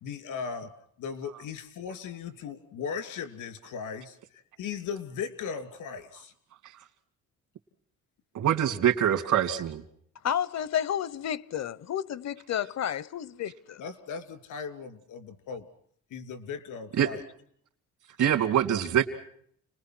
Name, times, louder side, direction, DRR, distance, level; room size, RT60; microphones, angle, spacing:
voice 1, 0.0-0.7 1.0-4.2 4.6-6.3 13.8-15.7 16.1-17.2, left 6 dB, 85° left, 3.0 m, -37 dB
voice 2, 8.3-9.8 17.0-17.1 18.2-19.1, right 10 dB, 75° right, 2.8 m, -24 dB
voice 3, 10.2-13.8, left 9 dB, 60° left, 0.9 m, -31 dB
30.0 x 20.5 x 6.1 m
cardioid pair, 90°, 30 cm